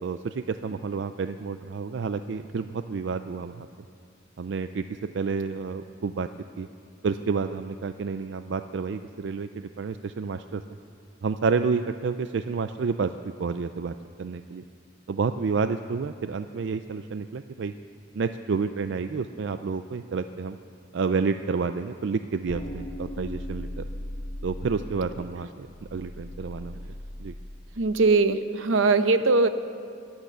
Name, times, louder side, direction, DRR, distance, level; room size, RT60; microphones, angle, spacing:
voice 1, 0.0-3.7 4.4-4.8 5.1-6.3 6.6-6.7 7.0-10.6 11.2-13.1 13.4-14.6 15.1-17.7 18.1-20.6 20.9-23.9 24.4-26.9 27.2-27.3, right 5 dB, 60° right, 10 dB, 0.4 m, -29 dB
sound 1, 22.5-27.6, left 1 dB, 35° left, 1.0 m, -38 dB
voice 2, 27.8-29.5, right 3 dB, 80° right, 11 dB, 0.8 m, -21 dB
23.5 x 8.8 x 6.8 m, 2.3 s
head